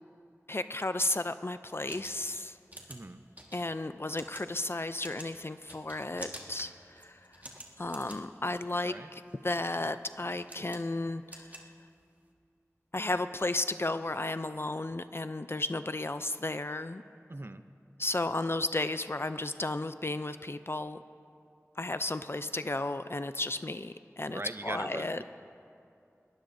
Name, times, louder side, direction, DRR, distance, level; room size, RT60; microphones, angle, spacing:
voice 1, 0.5-2.6 3.5-7.2 7.8-11.6 12.9-17.0 18.0-21.0 21.8-25.2, left 2 dB, 50° left, 11 dB, 0.4 m, -33 dB
sound 1, 1.6-12.3, right 1 dB, 30° right, 1.6 m, -50 dB
voice 2, 2.9-3.2 8.8-9.1 17.3-17.6 24.3-25.2, right 2 dB, 50° right, 9 dB, 0.6 m, -40 dB
21.5 x 18.5 x 2.6 m, 2.5 s
wide cardioid pair, 40°, 5 cm